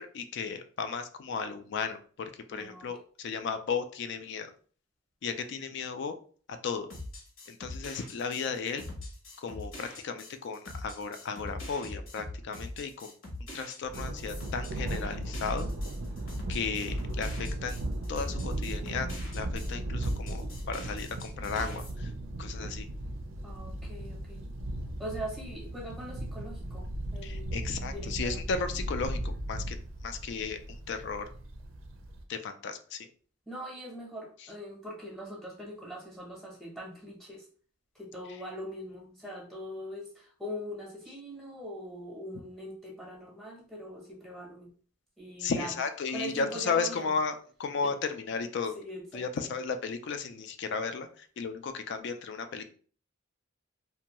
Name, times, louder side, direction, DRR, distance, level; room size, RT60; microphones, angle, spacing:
voice 1, 0.0-4.5 5.2-6.1 6.5-6.9 7.5-8.8 9.4-13.1 13.5-15.7 16.5-17.8 18.1-19.1 19.3-22.1 22.4-22.9 27.2-29.8 30.0-30.6 30.9-31.3 32.3-33.0 45.4-48.7 49.1-51.1 51.4-52.7, left 5 dB, 60° left, 9 dB, 0.3 m, -34 dB
voice 2, 2.5-2.9 23.4-24.4 25.0-28.4 33.5-37.5 37.9-44.7 45.2-45.8 46.1-47.1 47.8-47.9 48.7-49.5, equal, ahead, -2 dB, 0.8 m, -42 dB
sound 1, 6.9-19.7 20.0-21.9, left 2 dB, 85° left, 0.9 m, -43 dB
Thunder, 13.8-32.2, right 1 dB, 75° right, 0.5 m, -36 dB
2.6 x 2.2 x 2.9 m, 0.43 s
head